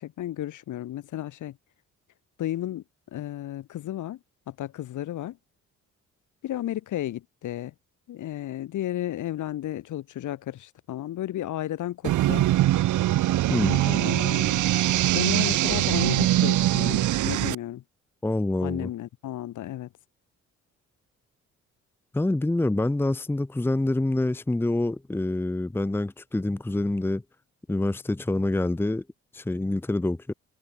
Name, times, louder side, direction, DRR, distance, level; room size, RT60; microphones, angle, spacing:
voice 1, 0.0-1.6 2.4-2.8 3.1-4.2 4.5-5.4 6.4-7.7 8.1-12.5 13.8-14.6 15.1-17.8 18.6-19.9, left 13 dB, 80° left, 5.1 m, -33 dB
sound 1, 12.0-17.6, right 15 dB, 80° right, 1.4 m, -22 dB
voice 2, 13.5-13.8 18.2-18.9 22.1-27.2 27.7-29.0 29.3-30.3, left 2 dB, 5° left, 0.8 m, -26 dB
cardioid pair, 90°, 30 cm